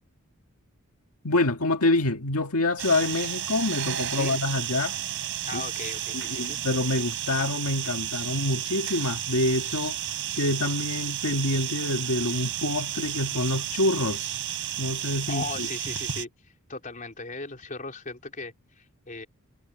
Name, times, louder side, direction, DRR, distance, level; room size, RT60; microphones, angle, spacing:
voice 1, 1.2-5.0 5.5-5.6 6.3-10.0 10.3-14.3 14.8-15.7, left 2 dB, 85° left, 1.8 m, -26 dB
sound 1, 2.8-16.3, right 11 dB, 65° right, 3.6 m, -32 dB
voice 2, 5.5-6.6 15.3-19.3, left 3 dB, 40° left, 3.9 m, -38 dB
head